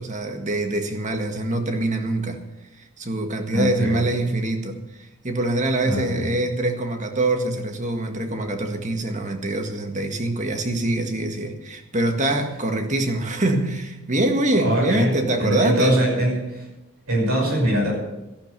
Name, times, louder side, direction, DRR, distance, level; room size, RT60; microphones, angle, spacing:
voice 1, 0.0-2.4 3.0-16.0, right 2 dB, 35° right, 1.8 m, -24 dB
voice 2, 3.5-4.0 5.8-6.3 14.5-16.7 17.1-17.9, equal, 75° right, 6.1 m, -22 dB
14.0 x 11.5 x 6.8 m
head